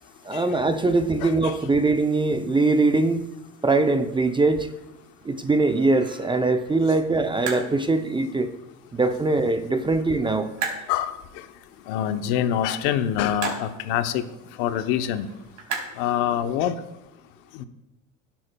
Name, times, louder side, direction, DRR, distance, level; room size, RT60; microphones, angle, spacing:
voice 1, 0.2-3.2 3.6-4.7 5.2-8.5 8.9-10.5, right 3 dB, 15° right, 8 dB, 0.5 m, -22 dB
voice 2, 1.2-1.5 10.9-11.2 11.9-14.2 14.6-15.3 16.0-16.8 17.5-17.6, left 10 dB, 70° left, 10 dB, 0.9 m, -25 dB
sound 1, 3.5-16.8, right 5 dB, 45° right, 3.5 m, -40 dB
12.5 x 10.0 x 2.2 m, 0.95 s
supercardioid pair, 100°, 40 cm